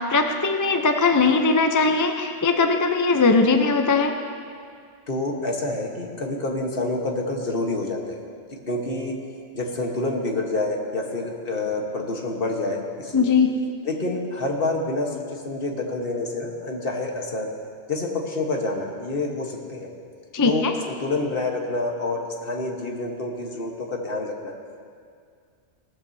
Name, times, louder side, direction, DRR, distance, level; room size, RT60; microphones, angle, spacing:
voice 1, 0.0-4.1 13.1-13.5 20.3-20.7, left 4 dB, 25° left, 5 dB, 0.5 m, -20 dB
voice 2, 5.1-8.2 8.7-9.1 9.5-13.3 13.8-17.5 17.9-19.9 20.4-24.6, left 2 dB, 55° left, 1 dB, 1.5 m, -28 dB
18.0 x 13.5 x 2.8 m, 2.2 s
omnidirectional pair, 1.2 m